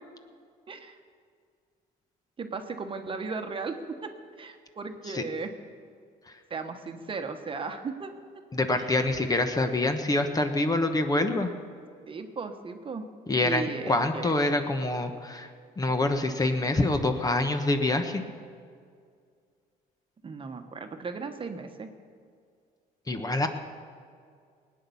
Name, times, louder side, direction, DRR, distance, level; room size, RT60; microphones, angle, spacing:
voice 1, 0.7-1.0 2.4-3.8 4.0-4.1 4.4-5.5 6.5-8.1 8.8-8.9 12.1-13.0 13.4-14.3 20.2-21.9, right 4 dB, 30° right, 6 dB, 1.2 m, -36 dB
voice 2, 8.5-11.5 13.3-15.5 15.8-18.2 23.1-23.5, left 2 dB, 20° left, 6 dB, 1.1 m, -26 dB
18.5 x 9.6 x 7.1 m, 2.2 s
cardioid pair, 110°, 17 cm